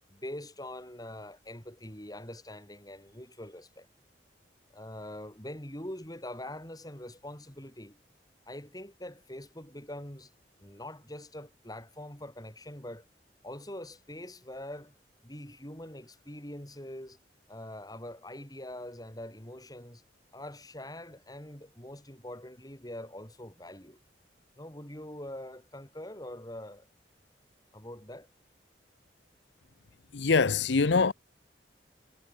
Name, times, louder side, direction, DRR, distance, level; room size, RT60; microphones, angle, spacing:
voice 1, 0.1-3.9 4.7-8.0 8.5-10.3 10.6-13.1 13.4-14.9 15.2-17.2 17.5-20.0 20.3-24.0 24.5-26.9 27.7-28.3, left 1 dB, 20° left, 7.7 m, -43 dB
voice 2, 30.1-31.1, left 4 dB, 80° left, 0.7 m, -24 dB
head